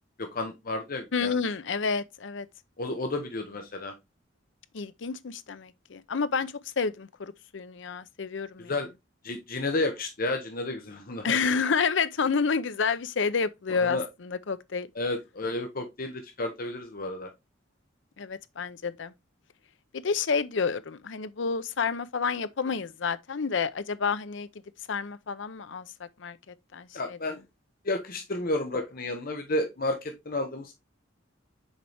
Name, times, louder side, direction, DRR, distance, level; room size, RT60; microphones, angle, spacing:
voice 1, 0.2-1.4 2.8-3.9 8.7-8.9 9.2-11.4 13.8-14.1 14.9-17.3 26.9-27.4 27.8-30.7, left 2 dB, 50° left, 1.0 m, -31 dB
voice 2, 1.1-2.5 4.7-8.7 11.2-14.9 18.2-19.1 19.9-24.5 24.9-27.2, left 5 dB, 65° left, 0.6 m, -29 dB
6.6 x 4.5 x 3.4 m
head